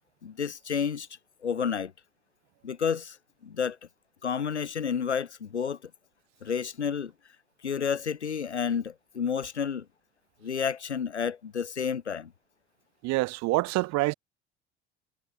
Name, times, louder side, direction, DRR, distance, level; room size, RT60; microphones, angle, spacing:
voice 1, 0.2-1.1 1.4-1.9 2.6-3.2 3.4-3.8 4.2-5.9 6.4-7.1 7.6-9.9 10.4-12.3, left 7 dB, 85° left, 1.9 m, -30 dB
voice 2, 13.0-14.1, right 21 dB, 55° right, 2.0 m, -26 dB
figure-of-eight pair, 70°, 33 cm